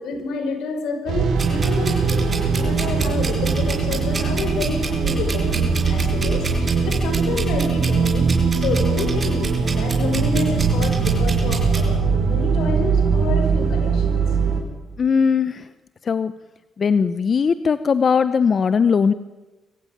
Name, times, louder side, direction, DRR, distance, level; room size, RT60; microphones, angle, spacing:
voice 1, 0.0-2.2 2.5-14.2, left 3 dB, 80° left, 6 dB, 5.1 m, -29 dB
sound 1, 1.1-14.6, right 5 dB, 70° right, 4.6 m, -21 dB
sound 2, 1.4-11.8, right 5 dB, 35° right, 6.3 m, -29 dB
voice 2, 15.0-15.7 16.0-16.3 16.8-19.1, left 6 dB, 45° left, 13 dB, 0.8 m, -19 dB
24.0 x 15.0 x 9.2 m, 1.1 s
cardioid pair, 90°, 0 cm